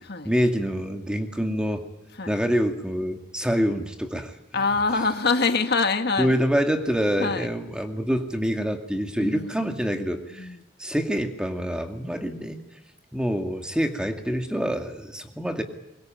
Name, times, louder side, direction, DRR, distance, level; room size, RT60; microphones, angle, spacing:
voice 1, 0.2-1.8 2.3-4.3 6.2-10.5 10.8-12.6 13.1-15.6, equal, 5° right, 5 dB, 2.2 m, -26 dB
voice 2, 4.5-6.3 7.2-7.5 9.2-9.7 9.9-10.1 10.4-10.6, left 4 dB, 60° left, 7 dB, 1.7 m, -25 dB
23.5 x 22.5 x 9.2 m, 0.90 s
head